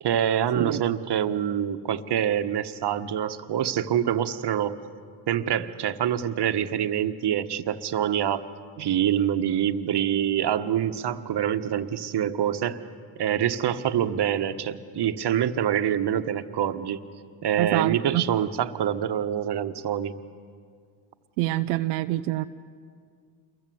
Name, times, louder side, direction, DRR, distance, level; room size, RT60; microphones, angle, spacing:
voice 1, 0.0-4.8 5.3-8.4 8.8-12.8 13.2-17.0 17.4-20.1, right 10 dB, 55° right, 9 dB, 1.5 m, -25 dB
voice 2, 17.6-18.2 21.4-22.4, right 16 dB, 90° right, 8 dB, 0.8 m, -26 dB
28.5 x 23.0 x 7.9 m, 2.1 s
supercardioid pair, 70°, 49 cm